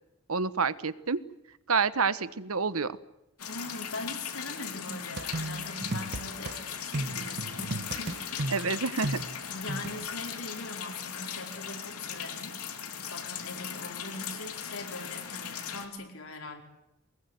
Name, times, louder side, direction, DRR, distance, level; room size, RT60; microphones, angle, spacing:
voice 1, 0.3-1.2 1.7-3.0 8.5-9.2, right 5 dB, 80° right, 15 dB, 1.2 m, -28 dB
sound 1, 3.4-15.9, left 8 dB, 90° left, 3.0 m, -38 dB
voice 2, 3.5-8.4 9.4-12.6 12.9-16.6, left 2 dB, 70° left, 3 dB, 4.8 m, -41 dB
sound 2, 5.2-6.6 6.9-10.1, right 2 dB, 50° right, 1.2 m, -35 dB
24.0 x 20.5 x 9.4 m, 0.90 s
head